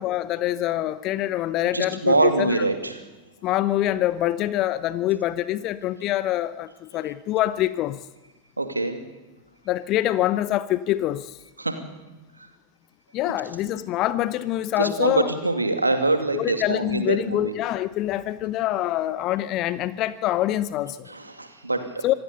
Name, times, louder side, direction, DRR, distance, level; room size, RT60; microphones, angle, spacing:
voice 1, 0.0-2.6 3.4-8.0 9.7-11.4 13.1-15.3 16.3-21.1 22.0-22.1, left 14 dB, 35° left, 16 dB, 0.7 m, -25 dB
voice 2, 1.7-3.0 8.6-9.0 11.6-11.8 13.3-13.4 14.8-17.5 21.1-22.2, right 2 dB, 80° right, 8 dB, 2.4 m, -24 dB
25.5 x 16.5 x 6.9 m, 1.2 s
figure-of-eight pair, 90°, 0 cm